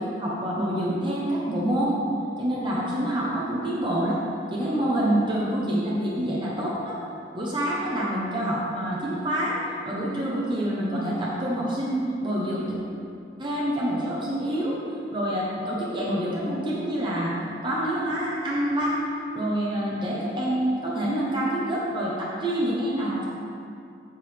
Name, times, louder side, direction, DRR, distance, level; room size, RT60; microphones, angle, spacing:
voice 1, 0.0-2.0 2.4-4.2 4.5-6.9 7.3-9.6 9.9-12.7 13.4-14.8 15.1-17.4 17.6-19.0 19.3-23.3, right 1 dB, 25° right, -5 dB, 1.1 m, -26 dB
7.7 x 7.7 x 3.5 m, 2.5 s
head